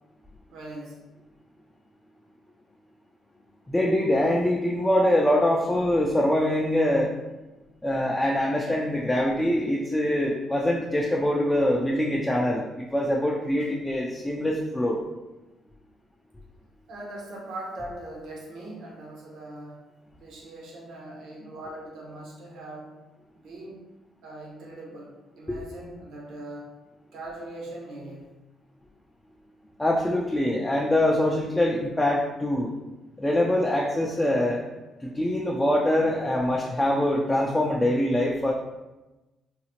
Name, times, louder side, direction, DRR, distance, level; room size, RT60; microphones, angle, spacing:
voice 1, 0.5-1.0 16.9-19.9 20.2-22.9 23.4-23.8 24.2-26.7 27.1-28.3, right 1 dB, 80° right, -2 dB, 0.9 m, -40 dB
voice 2, 3.7-7.1 7.8-15.0 25.5-25.6 29.8-32.7 33.2-34.6 35.0-38.5, left 1 dB, 15° left, -3 dB, 0.4 m, -24 dB
3.8 x 2.0 x 2.9 m, 1.1 s
cardioid pair, 90°, 0 cm